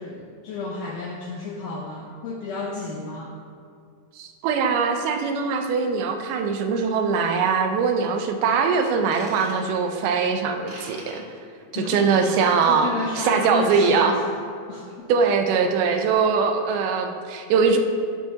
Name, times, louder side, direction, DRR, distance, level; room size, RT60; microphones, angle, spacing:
voice 1, 0.0-3.3 11.7-12.3 12.7-14.3 14.7-15.1, left 3 dB, 85° left, -2 dB, 1.5 m, -32 dB
voice 2, 4.2-11.2 11.7-12.9 13.2-14.2 15.1-17.8, right 5 dB, 85° right, 5 dB, 2.2 m, -22 dB
Ratchet pawl / Tools, 9.1-10.0 10.7-11.1 11.9-12.9 13.5-13.9 14.2-14.4 14.9-15.0, right 2 dB, 55° right, 2.8 m, -42 dB
13.5 x 4.6 x 2.8 m, 2.3 s
omnidirectional pair, 3.6 m